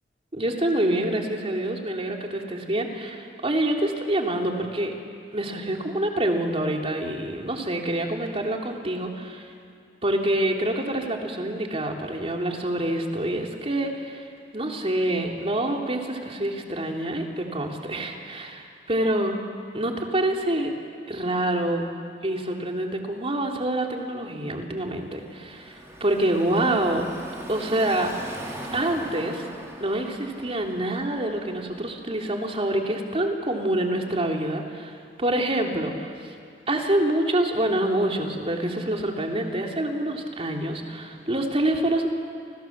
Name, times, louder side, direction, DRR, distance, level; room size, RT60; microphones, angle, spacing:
voice 1, 0.3-4.9 5.3-9.5 10.0-14.3 14.5-19.3 19.7-20.7 21.1-21.8 22.2-27.1 27.5-28.4 28.7-29.5 29.8-36.3 36.7-42.1, right 1 dB, 35° right, 1 dB, 3.1 m, -26 dB
Car passing by / Traffic noise roadway noise, 25.1-32.0, right 1 dB, 15° right, 4.6 m, -40 dB
29.5 x 26.5 x 7.4 m, 2.3 s
head